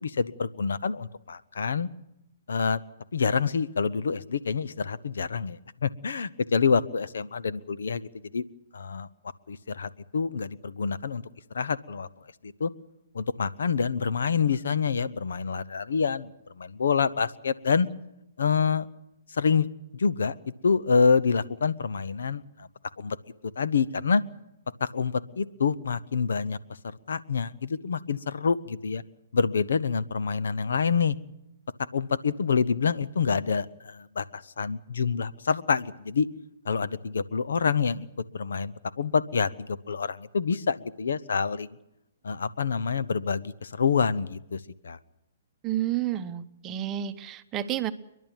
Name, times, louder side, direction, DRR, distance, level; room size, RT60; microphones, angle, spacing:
voice 1, 0.0-1.9 2.5-2.8 3.1-8.4 8.7-9.1 9.5-11.2 11.5-12.1 12.4-12.7 13.1-16.3 16.6-17.9 18.4-18.9 19.3-20.3 20.6-22.4 23.0-23.2 23.6-24.2 24.8-26.6 27.1-29.0 29.3-31.2 31.9-36.3 36.7-38.1 38.3-41.7 42.2-45.0, left 5 dB, 80° left, 15 dB, 0.9 m, -27 dB
voice 2, 45.6-47.9, right 12 dB, 20° right, 10 dB, 0.9 m, -30 dB
29.5 x 11.0 x 9.0 m, 0.87 s
hypercardioid pair, 145°, 0 cm